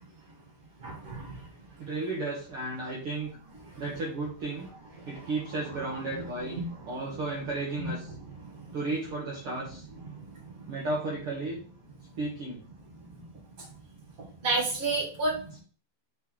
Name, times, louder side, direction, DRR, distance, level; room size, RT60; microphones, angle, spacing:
voice 1, 0.8-1.3 5.0-5.3 6.1-6.2 6.5-6.6 7.8-7.9 8.2-8.5 10.0-10.7 13.1-13.2 14.4-15.4, right 2 dB, 20° right, -3 dB, 1.4 m, -32 dB
voice 2, 1.8-3.3 3.8-4.7 5.1-8.1 8.7-9.8 10.7-11.6 12.2-12.6, right 2 dB, 75° right, -4 dB, 1.2 m, -33 dB
9.5 x 3.2 x 3.9 m, 0.40 s
omnidirectional pair, 5.0 m